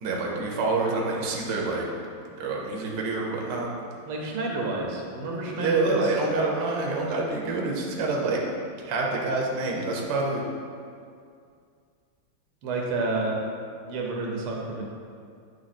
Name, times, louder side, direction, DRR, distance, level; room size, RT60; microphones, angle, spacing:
voice 1, 0.0-1.8 2.4-3.7 5.5-8.4 8.8-10.4, right 3 dB, 60° right, -1 dB, 1.3 m, -27 dB
voice 2, 4.1-6.0 12.6-13.4 13.9-14.8, right 2 dB, 75° right, -1 dB, 1.8 m, -30 dB
8.9 x 3.4 x 4.1 m, 2.3 s
omnidirectional pair, 2.4 m